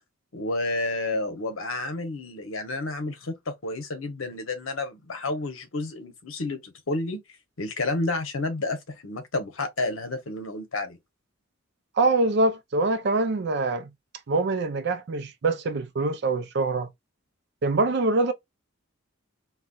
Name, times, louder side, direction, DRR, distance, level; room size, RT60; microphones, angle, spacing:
voice 1, 0.3-7.2 7.6-11.0, left 2 dB, 75° left, 0.9 m, -30 dB
voice 2, 12.0-13.9 14.3-16.9 17.6-18.3, right 3 dB, 55° right, 0.5 m, -24 dB
4.0 x 2.3 x 2.3 m
head